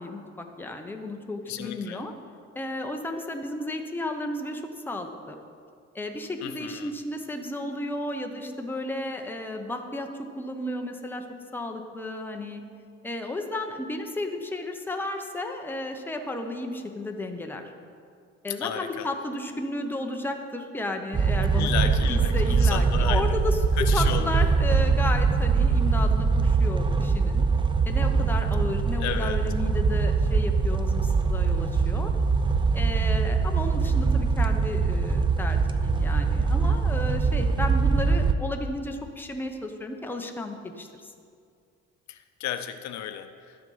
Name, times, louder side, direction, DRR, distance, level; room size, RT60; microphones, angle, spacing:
voice 1, 0.0-2.1 2.5-5.4 5.9-10.1 10.4-11.2 11.5-12.6 13.0-17.6 18.4-21.7 22.1-27.4 27.9-32.1 32.7-41.1, left 2 dB, 5° left, 3 dB, 0.9 m, -33 dB
voice 2, 1.5-2.0 6.4-6.9 18.6-19.1 21.5-23.3 23.8-24.5 29.0-29.4 42.1-43.6, left 10 dB, 70° left, 9 dB, 0.7 m, -33 dB
sound 1, 21.1-38.3, right 4 dB, 15° right, 0.5 m, -23 dB
12.5 x 7.8 x 5.6 m, 2.3 s
cardioid pair, 130°, 29 cm